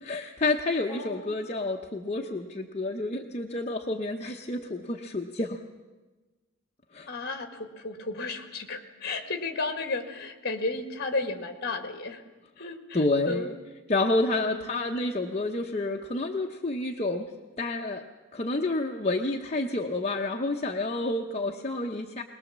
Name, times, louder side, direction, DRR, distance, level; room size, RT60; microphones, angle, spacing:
voice 1, 0.0-5.6 6.9-7.1 12.9-13.5 13.9-17.2 17.6-18.0 18.3-22.2, left 2 dB, 30° left, 0 dB, 0.8 m, -29 dB
voice 2, 0.9-1.3 7.0-12.2 12.6-13.6 14.4-14.7, left 3 dB, 50° left, 7 dB, 1.9 m, -33 dB
22.0 x 20.0 x 7.3 m, 1.2 s
head